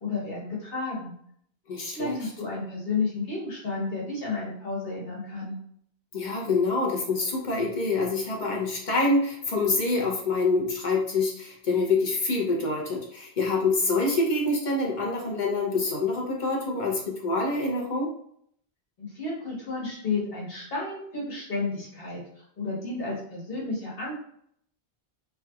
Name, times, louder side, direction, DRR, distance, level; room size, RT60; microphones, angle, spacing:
voice 1, 0.0-1.1 1.9-5.6 19.0-24.2, left 3 dB, 70° left, -5 dB, 1.5 m, -32 dB
voice 2, 1.7-2.2 6.1-18.1, left 3 dB, 50° left, -1 dB, 0.8 m, -26 dB
3.4 x 2.9 x 2.3 m, 0.66 s
omnidirectional pair, 1.0 m